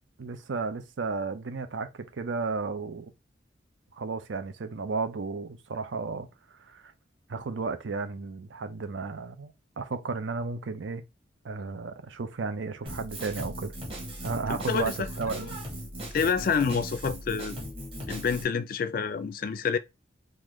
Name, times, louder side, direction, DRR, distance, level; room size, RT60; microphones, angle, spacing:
voice 1, 0.2-3.1 3.9-6.3 6.7-6.9 7.3-11.0 11.4-13.7 14.2-15.6 16.7-16.8, right 4 dB, 85° right, 0.6 m, -33 dB
Drum kit, 12.9-18.4, equal, 30° right, 1.3 m, -38 dB
voice 2, 14.7-15.1 16.1-17.6 18.1-19.8, left 6 dB, 50° left, 0.3 m, -28 dB
3.8 x 2.5 x 3.1 m
head